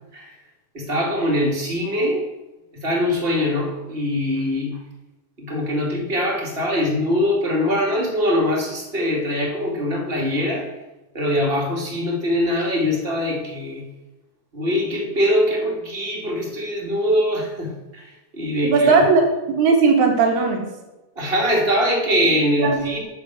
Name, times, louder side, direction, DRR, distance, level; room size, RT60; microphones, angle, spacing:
voice 1, 0.7-2.3 2.8-4.7 5.4-10.7 11.1-13.8 14.5-17.7 18.4-18.7 21.2-23.0, left 1 dB, 20° right, -1 dB, 2.0 m, -22 dB
voice 2, 18.6-20.6 22.6-22.8, right 4 dB, 70° right, 1 dB, 3.1 m, -17 dB
8.8 x 6.8 x 7.8 m, 1.0 s
omnidirectional pair, 3.5 m